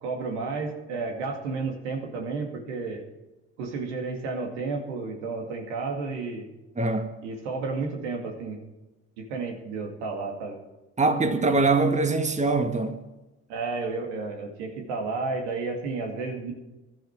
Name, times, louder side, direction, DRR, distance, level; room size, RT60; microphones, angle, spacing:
voice 1, 0.0-3.0 3.6-6.5 7.2-8.6 9.2-10.6 13.5-16.5, right 4 dB, 85° right, 2.3 m, -32 dB
voice 2, 6.8-7.1 11.0-13.0, right 3 dB, 20° right, 1.6 m, -23 dB
16.5 x 11.5 x 4.6 m
hypercardioid pair, 60°, 34 cm